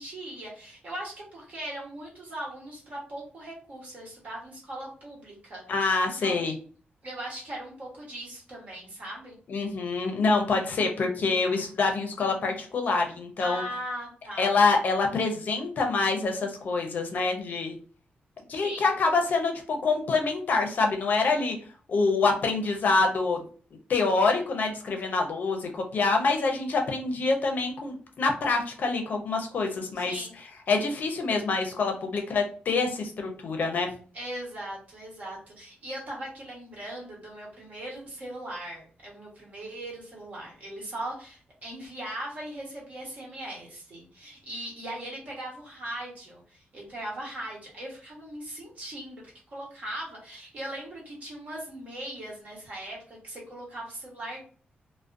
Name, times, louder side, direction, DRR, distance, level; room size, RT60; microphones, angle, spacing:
voice 1, 0.0-6.5 7.0-9.4 13.4-14.5 18.5-18.9 29.9-30.3 34.1-49.2 49.5-54.5, right 1 dB, 50° right, -3 dB, 1.1 m, -39 dB
voice 2, 5.7-6.5 9.5-13.6 14.4-17.8 18.5-21.6 21.9-23.4 23.9-30.1 30.7-33.9, left 3 dB, 55° left, 3 dB, 0.5 m, -26 dB
2.4 x 2.1 x 2.5 m, 0.42 s
wide cardioid pair, 140°, 3 cm